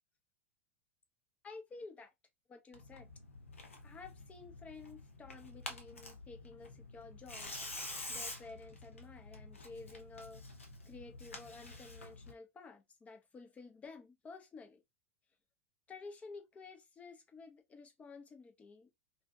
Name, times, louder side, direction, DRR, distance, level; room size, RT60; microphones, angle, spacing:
voice 1, 1.4-2.1 2.5-3.1 3.8-7.6 7.8-14.8 15.9-18.9, left 4 dB, 20° left, 0.6 m, -52 dB
Tearing, 2.7-12.3, left 2 dB, 80° left, 0.7 m, -48 dB
2.7 x 2.3 x 2.3 m
figure-of-eight pair, 85°, 7 cm